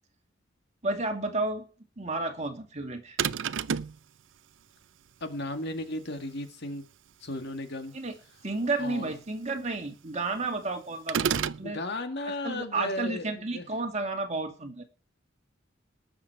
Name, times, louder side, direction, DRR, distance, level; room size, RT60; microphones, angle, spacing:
voice 1, 0.8-1.6 2.0-3.2 7.9-8.1 8.4-11.8 12.2-14.8, right 3 dB, 35° right, 4 dB, 2.5 m, -32 dB
sound 1, 3.2-4.0 11.1-11.7, right 7 dB, 70° right, 0.5 m, -28 dB
voice 2, 5.2-6.9 7.2-7.9 8.8-9.1 11.6-13.7, left 2 dB, 60° left, 7 dB, 1.8 m, -35 dB
19.0 x 7.4 x 4.7 m, 0.37 s
head